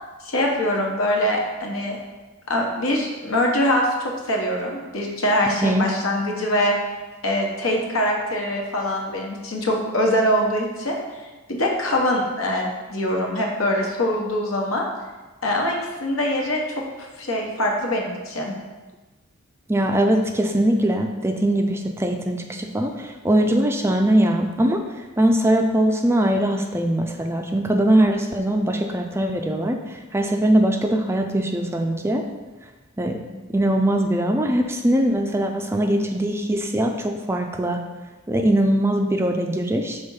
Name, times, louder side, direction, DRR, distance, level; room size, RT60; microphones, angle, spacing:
voice 1, 0.2-2.0 2.5-6.8 7.2-11.0 11.5-14.8 15.4-16.8 17.2-18.5, left 1 dB, 70° left, 0 dB, 1.1 m, -23 dB
voice 2, 19.7-24.8 25.2-32.2 33.0-33.2 33.5-37.8 38.3-40.0, right 1 dB, 10° right, 4 dB, 0.4 m, -21 dB
5.2 x 3.6 x 5.6 m, 1.2 s
head